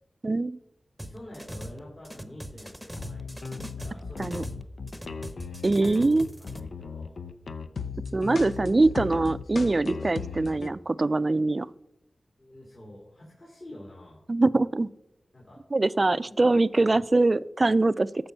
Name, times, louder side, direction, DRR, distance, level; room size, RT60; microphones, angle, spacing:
voice 1, 0.2-0.6 4.2-4.4 5.6-6.3 8.1-11.7 14.3-14.9 15.7-18.1, right 2 dB, 40° right, 17 dB, 0.4 m, -23 dB
voice 2, 1.0-5.5 6.6-7.2 12.4-14.2 15.3-15.6 16.1-16.5 16.8-17.0, left 1 dB, 45° left, -4 dB, 3.4 m, -48 dB
sound 1, 1.0-4.6 4.9-6.6, equal, ahead, 0.9 m, -40 dB
sound 2, 3.0-10.7, left 5 dB, 80° left, 0.6 m, -37 dB
14.0 x 5.3 x 5.5 m, 0.87 s
cardioid pair, 60°, 0 cm